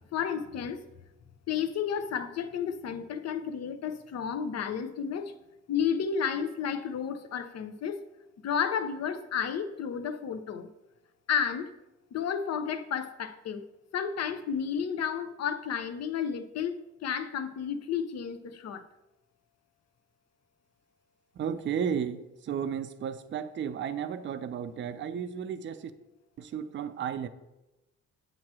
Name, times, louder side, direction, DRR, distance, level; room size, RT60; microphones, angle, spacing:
voice 1, 0.1-0.8 1.5-5.3 5.7-8.0 8.4-10.7 11.3-11.7 12.1-13.6 13.9-18.8, left 7 dB, 55° left, 0.7 m, -32 dB
voice 2, 21.4-25.9 26.4-27.3, right 8 dB, 40° right, 0.5 m, -33 dB
7.4 x 2.9 x 6.1 m
cardioid pair, 90°, 30 cm